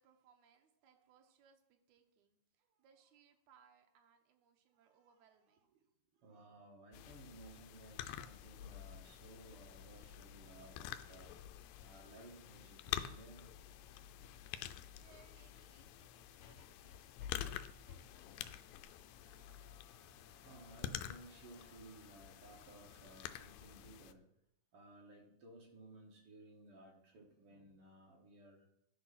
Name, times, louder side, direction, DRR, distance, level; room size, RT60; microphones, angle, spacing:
voice 1, 0.0-6.6 14.9-19.5, right 7 dB, 70° right, 5 dB, 2.2 m, -70 dB
voice 2, 6.2-11.3 11.8-13.5 20.4-24.3 24.7-28.7, right 2 dB, 55° right, 0 dB, 1.9 m, -58 dB
sound 1, 6.9-24.1, left 11 dB, 90° left, 2.3 m, -48 dB
sound 2, 18.9-23.8, left 4 dB, 45° left, 1.3 m, -68 dB
11.0 x 4.7 x 5.7 m, 0.76 s
omnidirectional pair, 3.9 m